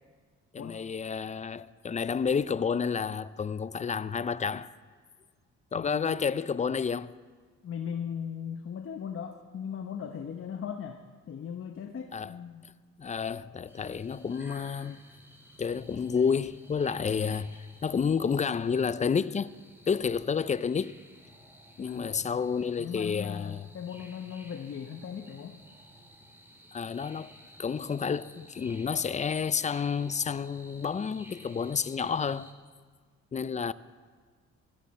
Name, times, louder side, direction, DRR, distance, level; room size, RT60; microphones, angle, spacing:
voice 1, 0.5-4.7 5.7-7.1 12.1-12.3 13.0-15.0 15.6-19.5 19.9-21.0 21.8-23.7 26.7-27.3 27.6-32.5 33.3-33.7, left 6 dB, 25° left, 0.4 m, -30 dB
voice 2, 5.7-6.2 7.6-12.6 21.8-22.4 22.8-25.6, left 7 dB, 45° left, 0.9 m, -38 dB
sound 1, 13.7-32.5, equal, 10° right, 2.0 m, -54 dB
18.0 x 13.5 x 4.3 m
cardioid pair, 90°, 30 cm